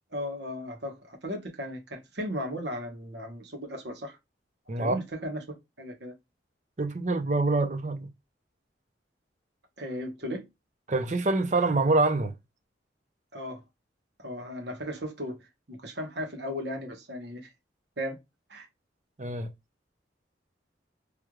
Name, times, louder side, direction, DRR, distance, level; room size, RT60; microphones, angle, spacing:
voice 1, 0.1-4.2 4.8-6.1 9.8-10.4 13.3-13.6 14.2-15.4 15.7-17.5 18.0-18.2 18.5-18.7, equal, 70° right, 1.2 m, -36 dB
voice 2, 6.8-8.1 10.9-12.3 19.2-19.5, right 2 dB, 40° right, 0.6 m, -25 dB
3.4 x 3.1 x 2.3 m
head